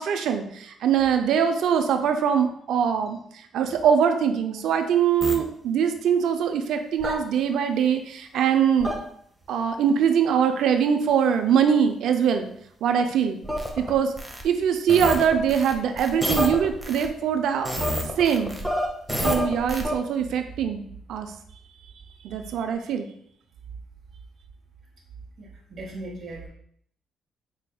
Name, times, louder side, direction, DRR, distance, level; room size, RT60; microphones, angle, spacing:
voice 1, 0.0-3.2 3.5-9.0 9.5-12.5 12.8-13.4 13.8-14.1 14.4-17.7 18.2-18.6 19.2-20.8 21.1-21.3 22.2-23.1, right 7 dB, 80° right, 6 dB, 0.4 m, -22 dB
sound 1, 5.2-5.4 7.0-7.1 8.8-8.9 13.4-14.4 14.9-17.1 17.6-19.9, equal, ahead, 0.7 m, -28 dB
voice 2, 25.4-26.5, right 2 dB, 45° right, -3 dB, 1.0 m, -38 dB
4.5 x 3.4 x 2.2 m, 0.66 s
cardioid pair, 90°, 0 cm